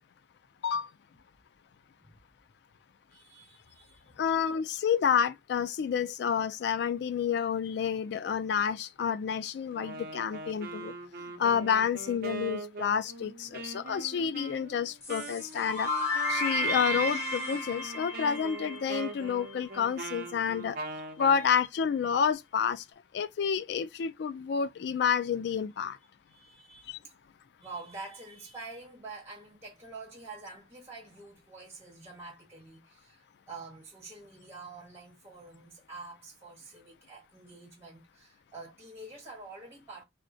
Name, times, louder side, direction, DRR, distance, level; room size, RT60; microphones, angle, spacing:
voice 1, 3.1-4.1 21.4-21.5 26.3-27.0 27.6-40.0, right 3 dB, 15° right, 1.3 m, -47 dB
voice 2, 4.2-10.9 11.4-15.9 16.3-20.8 21.2-22.8 23.1-26.0 26.9-27.0, left 7 dB, 65° left, 0.3 m, -29 dB
Wind instrument woodwind instrument, 9.7-21.5, right 3 dB, 55° right, 0.6 m, -42 dB
sound 1, 15.0-19.8, left 1 dB, 35° left, 1.2 m, -33 dB
3.6 x 2.1 x 2.6 m
head